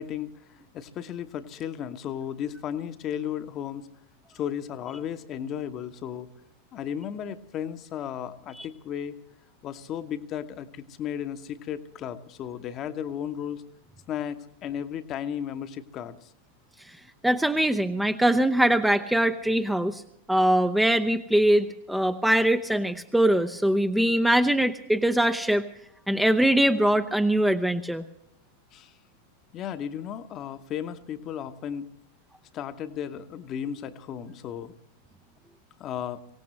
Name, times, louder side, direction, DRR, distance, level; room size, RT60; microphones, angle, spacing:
voice 1, 0.0-3.9 4.3-6.3 6.7-9.1 9.6-13.6 14.1-16.3 28.7-28.9 29.5-31.9 32.5-34.7 35.8-36.2, left 9 dB, 35° left, 9 dB, 1.1 m, -34 dB
voice 2, 17.2-20.0 20.3-25.6 26.1-28.0, right 1 dB, 5° right, 8 dB, 0.7 m, -22 dB
24.0 x 17.5 x 3.2 m, 0.78 s
figure-of-eight pair, 90°, 0 cm